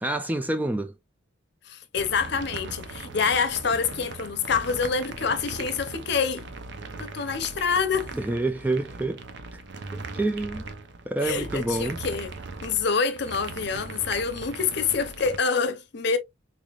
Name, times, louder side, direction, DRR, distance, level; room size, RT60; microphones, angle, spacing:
voice 1, 0.0-0.9 8.1-9.2 9.5-9.6 9.9-10.6 11.1-12.0, right 2 dB, 10° right, 0.3 m, -28 dB
voice 2, 1.7-6.5 7.0-8.1 11.2-12.3 12.6-16.2, left 5 dB, 55° left, 0.7 m, -26 dB
sound 1, 2.0-15.4, right 3 dB, 60° right, 0.6 m, -39 dB
3.8 x 3.3 x 2.3 m
head